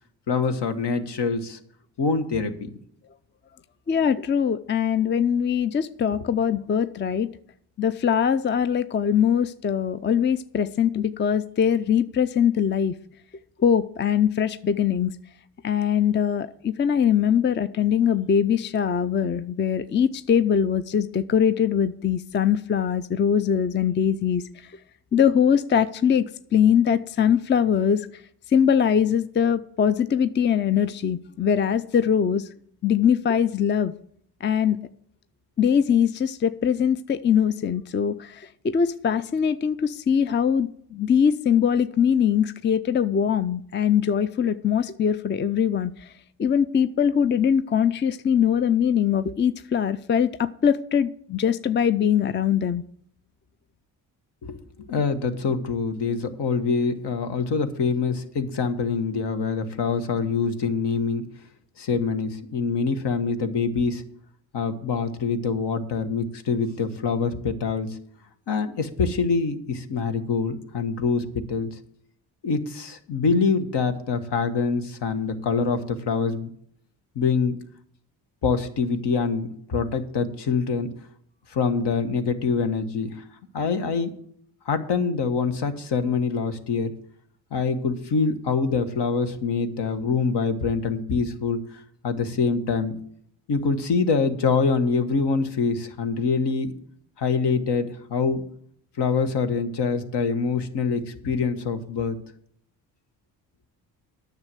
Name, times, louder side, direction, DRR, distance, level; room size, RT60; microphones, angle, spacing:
voice 1, 0.3-1.6 2.0-2.7 54.4-54.6 54.9-61.3 61.8-64.0 64.5-68.0 68.5-71.8 72.4-76.5 77.1-77.6 78.4-80.9 81.5-83.2 83.5-84.1 84.6-86.9 87.5-91.6 92.0-93.0 93.5-96.7 97.2-98.4 99.0-102.2, left 5 dB, 60° left, 8 dB, 1.4 m, -25 dB
voice 2, 3.9-7.3 7.8-12.9 13.6-15.1 15.6-24.8 25.1-26.2 26.5-28.2 28.5-32.5 32.8-33.9 34.4-34.8 35.6-46.1 46.4-52.8, left 8 dB, 25° left, 14 dB, 0.5 m, -22 dB
9.6 x 6.6 x 7.6 m, 0.66 s
supercardioid pair, 55°, 46 cm